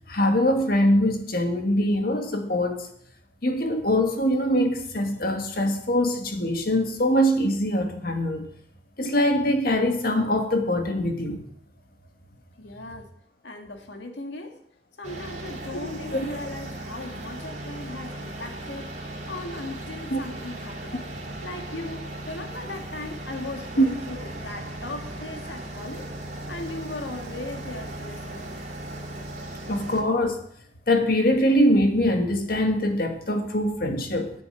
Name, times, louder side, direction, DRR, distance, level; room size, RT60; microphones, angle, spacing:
voice 1, 0.1-2.8 3.4-8.5 9.0-11.4 16.1-16.2 20.1-20.2 23.8-23.9 29.7-30.4 30.9-34.3, equal, 55° left, 5 dB, 1.7 m, -23 dB
voice 2, 12.6-13.1 13.4-14.6 15.0-19.0 19.3-21.0 21.4-26.1 26.5-28.6, left 2 dB, 80° left, 5 dB, 1.8 m, -38 dB
sound 1, 15.0-30.0, right 1 dB, 45° right, 2.9 m, -37 dB
10.0 x 7.6 x 7.8 m, 0.71 s
head